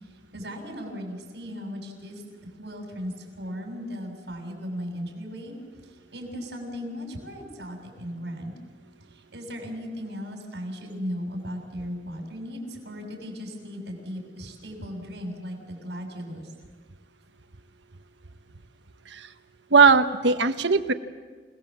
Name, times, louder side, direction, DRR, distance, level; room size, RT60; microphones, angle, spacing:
voice 1, 0.0-5.6 5.8-8.5 9.1-16.5, equal, 70° right, 1 dB, 6.8 m, -37 dB
voice 2, 19.7-20.9, right 5 dB, 90° right, 9 dB, 1.2 m, -19 dB
29.0 x 18.5 x 7.5 m, 1.4 s
head